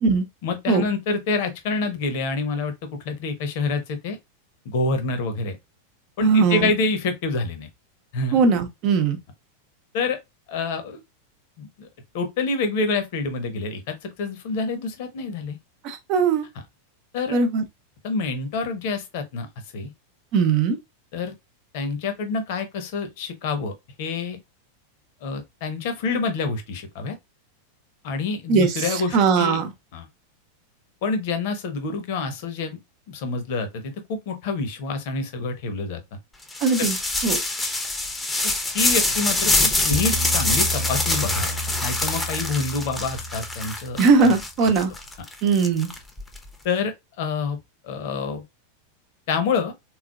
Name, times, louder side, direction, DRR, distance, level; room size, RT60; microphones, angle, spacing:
voice 1, 0.4-2.7 3.0-4.2 4.6-5.6 6.2-7.7 8.1-8.4 9.9-10.2 10.5-11.0 11.6-11.9 12.1-15.6 17.1-17.4 18.0-19.5 19.7-19.9 21.1-21.3 21.7-24.4 25.2-27.2 28.0-29.6 29.9-30.1 31.0-32.8 33.1-36.0 36.8-36.9 38.4-44.3 46.6-47.6 47.8-48.4 49.3-49.7, left 4 dB, 50° left, 0.9 m, -27 dB
voice 2, 6.2-6.7 8.3-9.2 15.8-16.4 17.3-17.6 20.3-20.8 28.5-29.7 36.6-37.0 37.2-37.4 44.0-44.9 45.4-45.9, right 5 dB, 40° right, 0.8 m, -20 dB
sound 1, 36.5-46.4, left 2 dB, 10° left, 0.8 m, -25 dB
sound 2, 39.9-44.2, equal, 75° left, 1.3 m, -32 dB
3.7 x 3.2 x 2.3 m
figure-of-eight pair, 90°, 0 cm